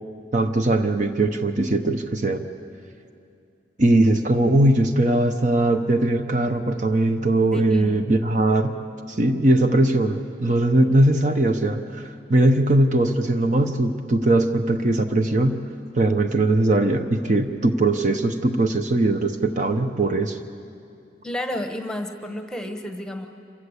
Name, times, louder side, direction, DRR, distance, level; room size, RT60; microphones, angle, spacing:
voice 1, 0.3-2.4 3.8-8.8 9.1-15.7 15.9-20.4, right 1 dB, 45° right, 7 dB, 0.9 m, -20 dB
voice 2, 7.5-8.0 21.2-23.3, left 1 dB, 5° left, 5 dB, 1.2 m, -31 dB
26.5 x 15.0 x 8.2 m, 2.4 s
head